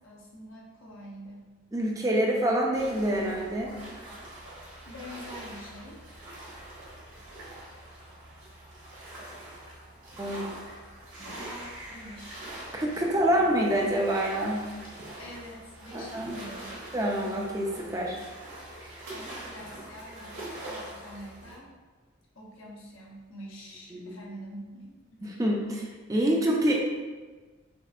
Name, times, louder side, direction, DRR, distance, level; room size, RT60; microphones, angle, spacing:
voice 1, 0.0-1.5 4.9-6.0 11.2-12.5 13.0-13.5 15.2-16.8 19.1-21.7 22.3-25.0 25.3-25.6, equal, 80° left, -3 dB, 0.9 m, -46 dB
voice 2, 1.7-3.8 9.2-9.4 10.2-10.5 12.7-14.7 15.9-16.4 16.9-18.2 18.8-19.1 23.9-24.2 25.2-26.7, right 1 dB, 15° right, -1 dB, 0.4 m, -27 dB
sound 1, 2.7-21.6, right 1 dB, 65° right, 1.3 m, -44 dB
6.3 x 2.5 x 2.4 m, 1.3 s
head